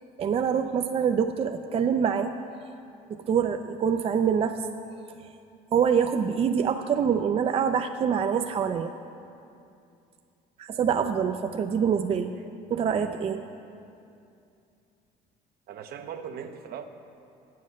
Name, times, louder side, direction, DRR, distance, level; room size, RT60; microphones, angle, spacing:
voice 1, 0.2-2.3 3.3-4.6 5.7-8.9 10.6-12.3 12.7-13.4, right 7 dB, 35° right, 7 dB, 0.4 m, -25 dB
voice 2, 15.7-16.8, right 8 dB, 65° right, 7 dB, 0.7 m, -39 dB
9.3 x 7.6 x 6.4 m, 2.6 s
cardioid pair, 110°, 17 cm